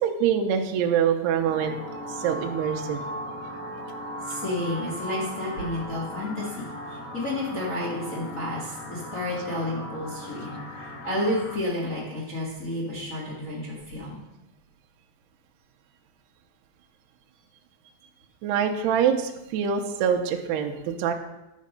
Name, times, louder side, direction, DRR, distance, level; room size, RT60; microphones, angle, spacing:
voice 1, 0.0-1.8 2.1-3.0 18.4-21.1, right 8 dB, 80° right, 2 dB, 2.5 m, -25 dB
sound 1, 1.4-11.5, equal, 85° left, 4.5 m, -37 dB
voice 2, 4.2-6.7 7.1-14.2, left 1 dB, 50° left, -5 dB, 0.9 m, -31 dB
11.0 x 6.4 x 5.3 m, 0.95 s
omnidirectional pair, 5.3 m